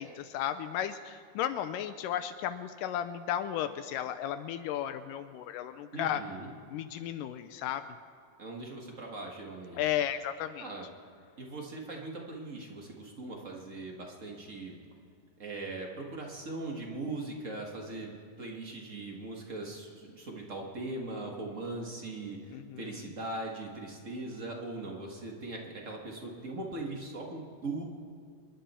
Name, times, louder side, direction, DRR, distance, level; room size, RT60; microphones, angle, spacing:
voice 1, 0.0-6.2 6.7-7.9 9.7-10.7 22.5-23.1, left 10 dB, 80° left, 10 dB, 2.1 m, -34 dB
voice 2, 5.9-6.5 8.4-9.8 10.6-10.9 11.4-14.8 15.4-27.8, right 2 dB, 35° right, 0 dB, 1.2 m, -40 dB
27.5 x 11.5 x 4.4 m, 2.4 s
omnidirectional pair, 3.9 m